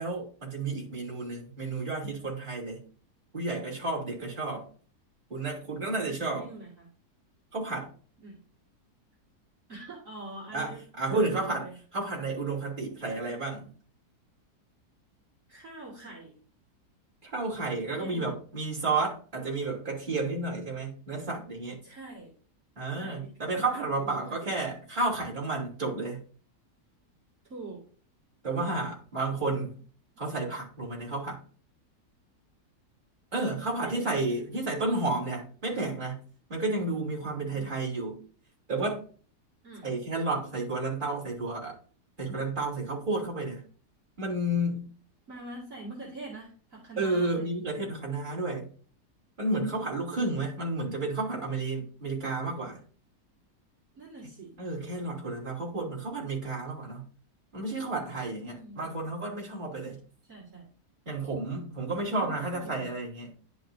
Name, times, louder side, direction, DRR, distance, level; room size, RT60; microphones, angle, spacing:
voice 1, 0.0-2.8 3.3-4.7 5.3-6.5 7.5-7.9 10.5-11.7 11.9-13.7 17.2-21.8 22.7-26.2 28.4-29.8 30.2-31.4 33.3-36.2 36.5-38.2 38.7-39.0 39.8-41.7 42.2-43.6 44.2-44.9 47.0-48.7 49.4-52.8 54.6-57.0 57.5-60.0 61.0-63.3, right 2 dB, 30° right, 3.2 m, -31 dB
voice 2, 6.3-6.9 8.2-8.4 9.7-10.8 11.1-11.8 15.5-16.4 18.0-18.3 21.8-22.3 23.0-24.5 27.5-27.8 33.8-34.1 37.5-37.7 39.6-39.9 45.3-47.7 49.5-49.9 53.9-54.5 58.4-59.0 60.2-60.7 62.1-62.9, right 3 dB, 50° right, 2.6 m, -44 dB
11.0 x 5.6 x 2.7 m
omnidirectional pair, 1.8 m